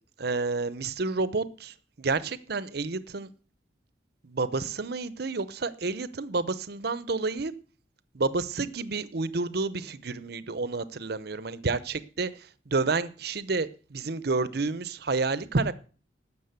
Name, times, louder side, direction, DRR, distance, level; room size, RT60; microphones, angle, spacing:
voice 1, 0.2-3.3 4.2-7.5 8.1-15.7, right 3 dB, 60° right, 15 dB, 0.8 m, -30 dB
12.5 x 7.2 x 8.1 m, 0.40 s
head